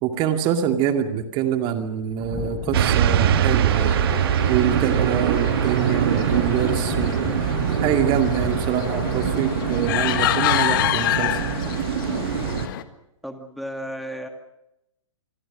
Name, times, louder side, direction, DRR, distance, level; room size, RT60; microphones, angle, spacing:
voice 1, 0.0-4.0 4.5-7.2 7.8-11.5, right 9 dB, 30° right, 6 dB, 2.2 m, -25 dB
Wind / Thunder, 2.1-10.3 10.6-10.7, left 5 dB, 15° left, 5.3 m, -35 dB
sound 1, 2.7-12.7, right 10 dB, 50° right, 1.6 m, -23 dB
sound 2, 3.7-12.8, left 13 dB, 45° left, 1.6 m, -28 dB
voice 2, 13.2-14.3, equal, ahead, 6 dB, 2.2 m, -33 dB
27.5 x 22.5 x 6.4 m, 0.90 s
figure-of-eight pair, 110°, 16 cm